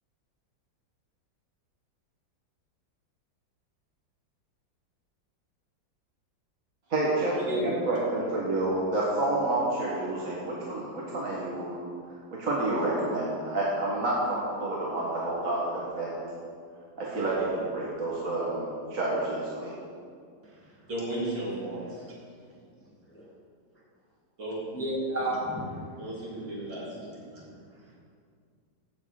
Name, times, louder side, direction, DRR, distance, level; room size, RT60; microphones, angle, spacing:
voice 1, 6.9-11.8 12.4-16.2 17.0-19.7, right 2 dB, 45° right, -5 dB, 1.9 m, -29 dB
voice 2, 20.9-22.0 24.4-24.6 26.0-27.0, right 1 dB, 70° right, -7 dB, 3.9 m, -34 dB
voice 3, 24.7-25.8 26.9-27.4, right 1 dB, 5° left, -4 dB, 1.6 m, -32 dB
14.5 x 6.5 x 5.0 m, 2.2 s
omnidirectional pair, 2.0 m